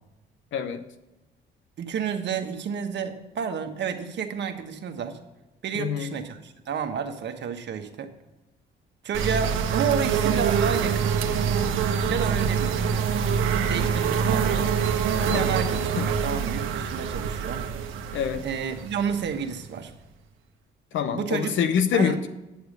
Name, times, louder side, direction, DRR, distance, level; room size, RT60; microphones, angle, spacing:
voice 1, 0.5-0.8 5.8-6.1 15.3-15.6 16.0-16.1 18.1-18.4 20.9-22.3, left 7 dB, 75° left, 9 dB, 0.8 m, -25 dB
voice 2, 1.8-5.2 5.6-8.1 9.0-11.1 12.1-12.8 13.7-14.7 15.2-17.6 18.4-19.9 21.1-21.5 21.9-22.2, right 7 dB, 60° right, 6 dB, 1.3 m, -30 dB
sound 1, 9.1-19.8, right 7 dB, 85° right, 1.0 m, -25 dB
10.5 x 6.9 x 6.6 m, 1.0 s
cardioid pair, 90°, 20 cm